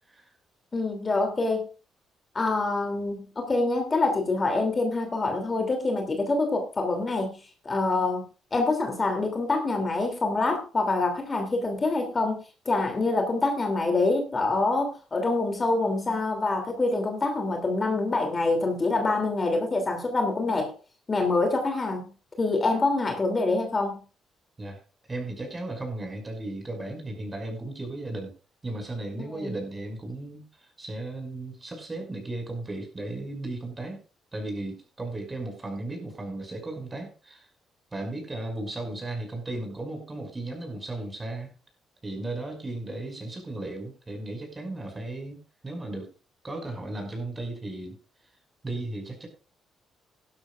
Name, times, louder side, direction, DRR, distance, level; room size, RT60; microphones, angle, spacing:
voice 1, 0.7-1.7 2.3-7.4 7.6-8.2 8.5-12.4 12.7-20.7 21.1-22.1 22.4-24.0 29.2-29.5, left 3 dB, 30° left, 4 dB, 2.9 m, -26 dB
voice 2, 25.1-28.3 28.6-34.0 34.3-37.5 37.9-41.5 42.0-46.1 46.4-48.0 48.6-49.3, right 2 dB, 25° right, 4 dB, 5.5 m, -35 dB
17.0 x 12.5 x 2.5 m, 0.32 s
cardioid pair, 90°, 0 cm